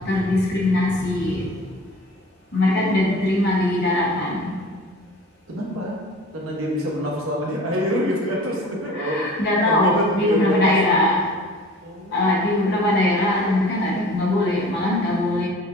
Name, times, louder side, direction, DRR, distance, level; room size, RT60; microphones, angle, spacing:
voice 1, 0.0-1.4 2.5-4.5 8.9-11.2 12.1-15.5, left 1 dB, 50° left, -4 dB, 1.0 m, -21 dB
voice 2, 2.8-3.2 5.5-6.0 6.3-9.2 9.6-10.7 11.8-12.3, equal, 70° right, -3 dB, 1.0 m, -26 dB
4.3 x 3.9 x 2.6 m, 1.5 s
head